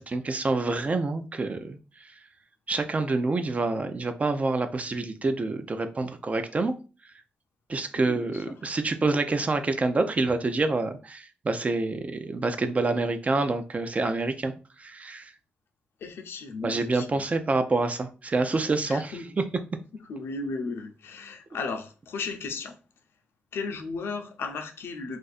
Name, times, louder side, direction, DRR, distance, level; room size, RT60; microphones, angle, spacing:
voice 1, 0.0-1.8 2.7-6.7 7.7-14.5 14.8-15.2 16.6-19.4, right 3 dB, 35° right, 0.5 m, -27 dB
voice 2, 7.9-8.4 16.0-17.3 18.8-19.3 19.9-22.8 23.5-25.2, left 4 dB, 85° left, 0.6 m, -35 dB
2.5 x 2.4 x 4.1 m
cardioid pair, 80°, 4 cm